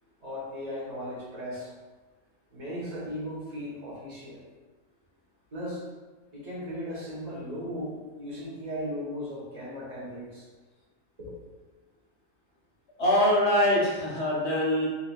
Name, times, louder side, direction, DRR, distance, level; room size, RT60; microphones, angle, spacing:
voice 1, 0.2-1.7 2.5-4.4 5.5-5.8 6.3-10.5 11.2-11.4, equal, 30° right, -8 dB, 0.9 m, -37 dB
voice 2, 13.0-14.9, left 1 dB, 50° left, -5 dB, 1.1 m, -23 dB
4.0 x 2.7 x 2.3 m, 1.3 s
omnidirectional pair, 1.6 m